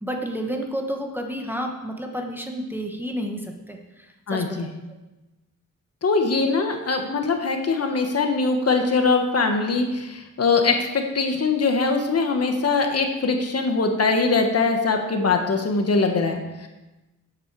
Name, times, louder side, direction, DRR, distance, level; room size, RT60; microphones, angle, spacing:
voice 1, 0.0-4.6, equal, 5° right, 2 dB, 1.1 m, -30 dB
voice 2, 4.3-4.7 6.0-16.7, left 4 dB, 50° left, 4 dB, 1.4 m, -22 dB
11.5 x 8.7 x 4.7 m, 1.1 s
wide cardioid pair, 120°, 32 cm